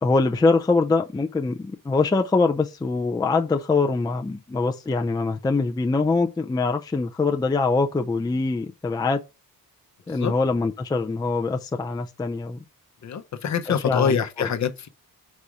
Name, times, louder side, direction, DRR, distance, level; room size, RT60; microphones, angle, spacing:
voice 1, 0.0-9.2 10.1-12.6 13.9-14.5, left 3 dB, 10° left, 0.4 m, -23 dB
voice 2, 13.0-14.9, left 7 dB, 50° left, 0.7 m, -25 dB
5.0 x 4.2 x 4.7 m
wide cardioid pair, 165°, 36 cm